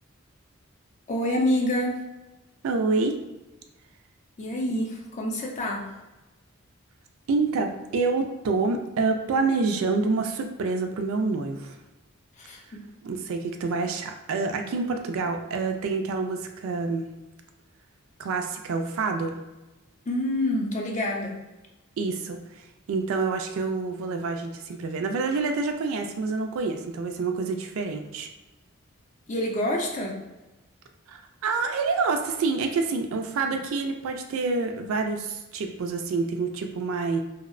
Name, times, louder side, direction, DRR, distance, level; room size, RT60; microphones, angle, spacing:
voice 1, 1.1-2.0 4.4-5.8 12.5-12.8 20.1-21.4 29.3-30.2, left 1 dB, 35° left, 0 dB, 0.4 m, -27 dB
voice 2, 2.6-3.2 7.3-11.7 13.0-17.1 18.2-19.4 22.0-22.4 22.9-28.3 31.1-37.2, right 4 dB, 65° right, 5 dB, 0.3 m, -27 dB
2.7 x 2.0 x 2.4 m, 1.1 s
head